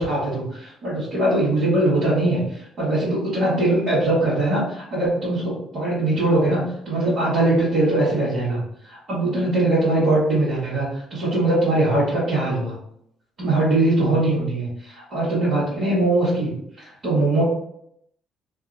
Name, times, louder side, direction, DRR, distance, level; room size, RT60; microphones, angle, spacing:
voice 1, 0.0-6.6 6.8-8.6 8.9-12.7 13.4-16.5 16.8-17.4, right 2 dB, 50° right, -10 dB, 1.4 m, -21 dB
2.6 x 2.6 x 2.6 m, 0.73 s
figure-of-eight pair, 45°, 0 cm